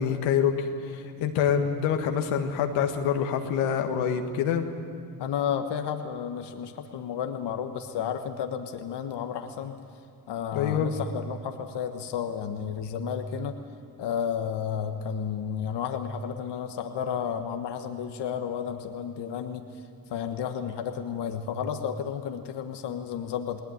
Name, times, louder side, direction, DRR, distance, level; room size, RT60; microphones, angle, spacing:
voice 1, 0.0-4.7 10.5-10.9, left 8 dB, 85° left, 5 dB, 1.7 m, -26 dB
voice 2, 5.2-9.7 10.3-13.5 14.0-19.7 20.1-23.6, left 7 dB, 60° left, 6 dB, 1.4 m, -32 dB
20.0 x 18.5 x 9.4 m, 2.4 s
supercardioid pair, 65°, 46 cm